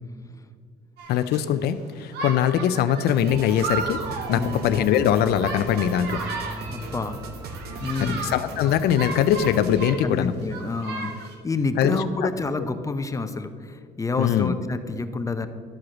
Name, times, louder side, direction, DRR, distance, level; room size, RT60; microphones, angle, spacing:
sound 1, 1.0-1.4 2.1-7.0 7.5-10.1 10.4-11.3, right 4 dB, 80° right, 1.5 m, -34 dB
voice 1, 1.1-4.0 4.3-6.2 8.0-10.3 11.8-12.0 14.2-14.5, left 9 dB, 75° left, 12 dB, 0.5 m, -22 dB
sound 2, 3.1-9.9, right 3 dB, 65° right, 1.0 m, -40 dB
sound 3, 3.3-8.3, right 1 dB, 25° right, 1.3 m, -39 dB
voice 2, 4.3-4.7 6.7-7.2 7.8-8.3 10.0-15.5, left 3 dB, 20° left, 10 dB, 0.6 m, -28 dB
12.0 x 4.8 x 6.2 m, 2.1 s
cardioid pair, 110°, 17 cm